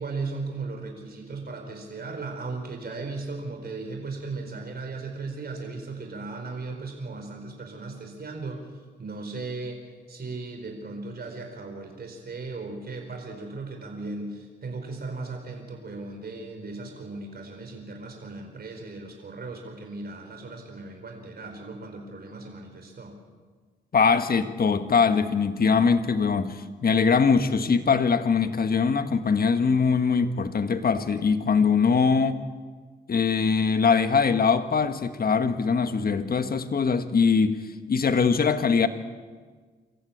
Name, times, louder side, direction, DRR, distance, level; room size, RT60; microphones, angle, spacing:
voice 1, 0.0-8.7 9.0-9.8 10.1-23.1, right 3 dB, 55° right, 3 dB, 4.7 m, -37 dB
voice 2, 23.9-32.4 33.1-37.6 37.9-38.9, left 5 dB, 55° left, 9 dB, 1.6 m, -22 dB
26.0 x 14.5 x 8.7 m, 1.5 s
cardioid pair, 65°, 19 cm